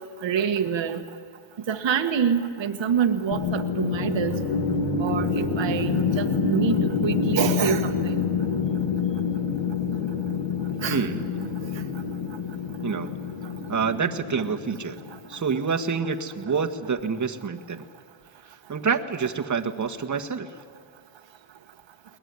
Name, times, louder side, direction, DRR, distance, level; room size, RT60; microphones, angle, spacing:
voice 1, 0.2-1.0 1.7-4.3 5.0-8.1 10.8-11.0 11.4-11.5, right 7 dB, 60° right, 6 dB, 1.5 m, -26 dB
sound 1, 3.3-15.4, left 5 dB, 75° left, 2.3 m, -27 dB
voice 2, 10.9-11.3 12.8-13.2 13.7-15.0 15.3-17.8 18.4-20.5, right 5 dB, 35° right, 6 dB, 1.6 m, -27 dB
22.0 x 19.5 x 9.6 m, 2.2 s
cardioid pair, 80°, 50 cm